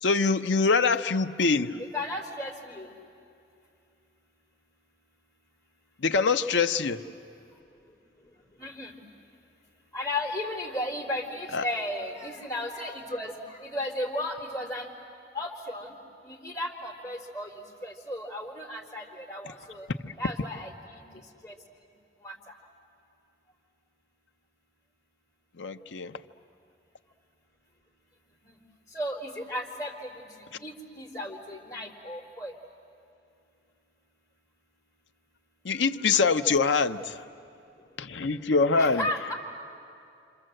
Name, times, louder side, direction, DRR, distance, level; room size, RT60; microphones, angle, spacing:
voice 1, 0.0-1.8 6.0-7.0 11.5-11.7 20.0-20.1 25.6-26.2 35.6-37.2 38.0-39.1, left 4 dB, 90° left, 8 dB, 0.7 m, -24 dB
voice 2, 1.9-2.9 8.6-8.9 9.9-14.9 15.3-16.0 16.2-19.9 20.2-21.0 21.4-21.6 22.2-22.5 28.5-28.6 28.9-30.2 30.6-32.5 38.7-39.3, left 1 dB, 20° left, -3 dB, 3.6 m, -35 dB
27.5 x 27.0 x 7.8 m, 2.5 s
head